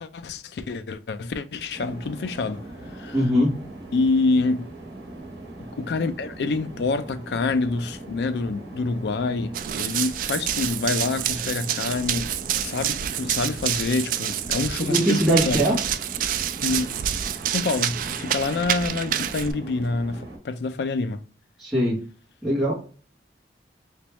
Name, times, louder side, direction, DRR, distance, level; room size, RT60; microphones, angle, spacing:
voice 1, 0.0-2.6 2.9-3.2 3.9-4.7 5.7-12.3 12.6-15.6 16.6-16.9 17.5-21.2, left 3 dB, 65° left, 0.4 m, -27 dB
sound 1, 1.7-20.4, right 1 dB, 70° right, 1.1 m, -40 dB
voice 2, 3.1-3.6 14.8-15.8 21.6-22.0 22.4-22.7, right 1 dB, ahead, 1.5 m, -21 dB
Run, 9.5-19.5, right 10 dB, 50° right, 0.3 m, -28 dB
3.4 x 3.0 x 2.9 m
head